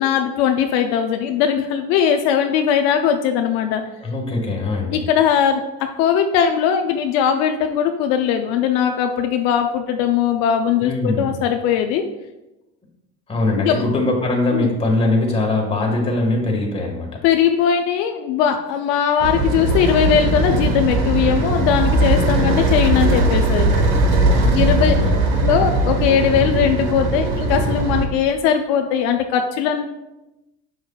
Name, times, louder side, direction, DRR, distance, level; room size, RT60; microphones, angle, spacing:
voice 1, 0.0-3.8 4.9-12.0 13.6-13.8 14.5-14.7 17.2-23.7 24.5-24.9 25.4-29.8, left 8 dB, 70° left, 5 dB, 0.6 m, -19 dB
voice 2, 4.0-5.0 10.8-11.3 13.3-17.1 22.4-22.5 24.3-25.2, left 2 dB, 20° left, 0 dB, 1.7 m, -21 dB
sound 1, 19.2-28.1, right 2 dB, 80° right, 1.2 m, -19 dB
7.1 x 6.2 x 2.4 m, 0.97 s
supercardioid pair, 115°, 30 cm